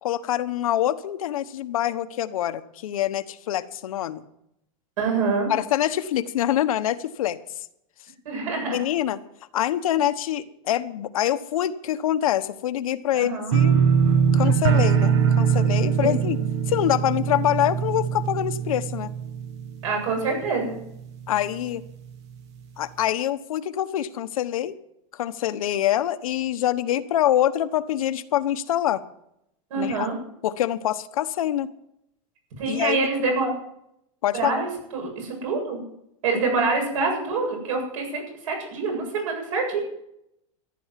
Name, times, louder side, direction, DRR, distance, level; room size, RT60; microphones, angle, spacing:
voice 1, 0.0-4.2 5.5-7.4 8.7-9.2 9.5-13.9 14.3-16.4 16.7-19.1 21.3-21.8 22.8-24.8 25.1-29.0 29.7-30.1 30.4-31.7 32.7-33.0 34.2-34.5, left 12 dB, 90° left, 10 dB, 1.2 m, -25 dB
voice 2, 5.0-5.5 8.2-8.8 13.1-13.5 16.2-16.3 19.8-20.8 29.7-30.2 32.6-33.5 34.3-35.8 36.2-39.8, right 4 dB, 70° right, 3 dB, 7.9 m, -26 dB
sound 1, 13.5-20.4 20.7-21.2 21.6-21.7, right 7 dB, 55° right, 1.2 m, -22 dB
14.5 x 11.5 x 7.5 m, 0.78 s
supercardioid pair, 165°, 17 cm